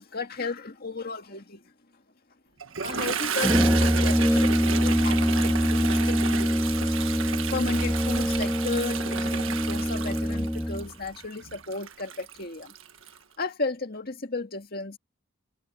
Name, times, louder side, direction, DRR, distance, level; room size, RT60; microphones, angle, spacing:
voice 1, 0.0-1.7 2.8-6.9 7.5-12.7 13.4-15.0, left 3 dB, 45° left, 2.0 m, -34 dB
Toilet flush, 2.6-13.2, right 7 dB, 70° right, 1.6 m, -33 dB
Brass instrument, 3.4-10.9, equal, 5° left, 2.6 m, -24 dB
head